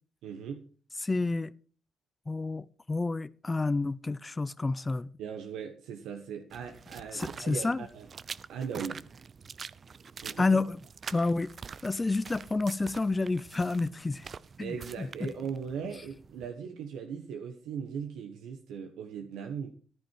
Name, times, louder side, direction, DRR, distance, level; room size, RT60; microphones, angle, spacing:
voice 1, 0.2-0.7 5.2-8.1 8.5-9.0 10.2-10.5 14.6-19.7, right 7 dB, 90° right, 1.4 m, -39 dB
voice 2, 1.0-1.5 2.3-5.1 7.1-7.9 10.4-10.8 11.1-11.5 11.8-14.3 14.6-15.3, left 3 dB, 20° left, 0.6 m, -29 dB
sound 1, 6.5-16.5, right 5 dB, 45° right, 0.6 m, -46 dB
14.5 x 11.0 x 4.7 m
cardioid pair, 90°, 0 cm